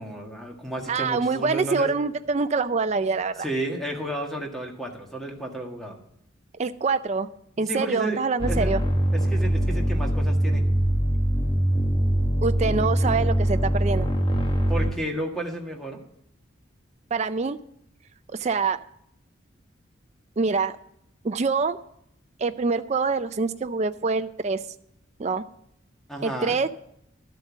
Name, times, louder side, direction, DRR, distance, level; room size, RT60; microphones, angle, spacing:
voice 1, 0.0-1.9 3.4-6.0 7.6-8.2 8.5-8.7 9.1-10.6 14.7-16.0 26.1-26.6, right 1 dB, ahead, 1 dB, 1.6 m, -32 dB
voice 2, 0.9-3.4 6.6-7.3 7.6-8.8 12.4-14.1 17.1-17.6 18.4-18.8 20.4-20.7 21.2-21.8 22.4-24.6 25.2-25.4 26.2-26.7, right 4 dB, 35° right, 9 dB, 0.4 m, -25 dB
sound 1, 8.4-14.9, right 1 dB, 25° left, 1.3 m, -23 dB
12.0 x 7.7 x 6.2 m, 0.73 s
head